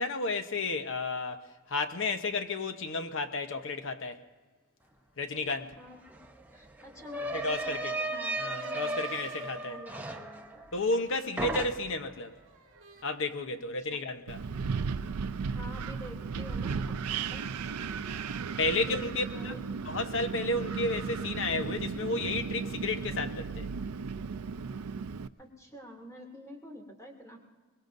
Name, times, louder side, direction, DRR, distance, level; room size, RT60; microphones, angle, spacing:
voice 1, 0.0-4.2 5.2-5.8 7.3-7.9 8.4-9.8 10.7-12.4 13.0-14.4 18.6-19.5 19.9-23.7, left 2 dB, 60° left, 1.0 m, -32 dB
sound 1, 5.5-5.6 5.8-11.1 11.4-12.1, right 2 dB, 10° right, 0.8 m, -36 dB
voice 2, 5.8-6.3 6.5-10.8 13.8-14.0 15.5-17.8 18.8-19.6 19.9-20.0 25.4-27.4, equal, 15° left, 2.6 m, -48 dB
sound 2, 7.8-9.7 11.1-11.5 12.1-13.0, right 6 dB, 60° right, 2.0 m, -54 dB
Wind, 14.3-25.3, right 5 dB, 90° right, 0.5 m, -35 dB
23.5 x 21.5 x 2.6 m
head